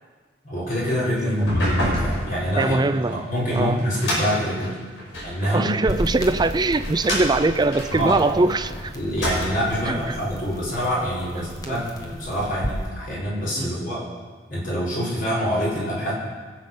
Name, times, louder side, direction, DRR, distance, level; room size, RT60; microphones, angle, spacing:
voice 1, 0.4-2.8 3.1-4.8 5.2-5.9 7.9-8.2 8.9-14.0 14.5-16.1, equal, 45° left, -6 dB, 4.7 m, -25 dB
sound 1, 1.3-5.4 6.0-8.7 9.0-9.8, equal, 65° left, 5.5 m, -28 dB
voice 2, 2.6-3.3 3.5-3.8 5.5-8.9 9.9-10.2 11.4-11.8 13.6-13.8, right 2 dB, 20° right, 12 dB, 0.4 m, -22 dB
sound 2, 5.9-12.9, equal, 20° left, 1.3 m, -34 dB
21.5 x 7.6 x 5.6 m, 1.5 s
head